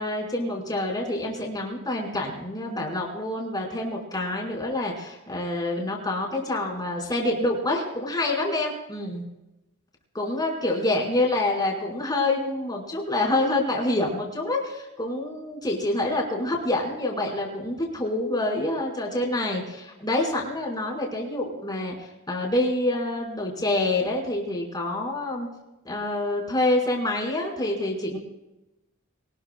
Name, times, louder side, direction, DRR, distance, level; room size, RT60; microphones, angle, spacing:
voice 1, 0.0-9.2 10.2-25.5 25.9-28.2, left 2 dB, 20° left, 0 dB, 5.0 m, -27 dB
24.5 x 20.0 x 2.3 m, 0.97 s
head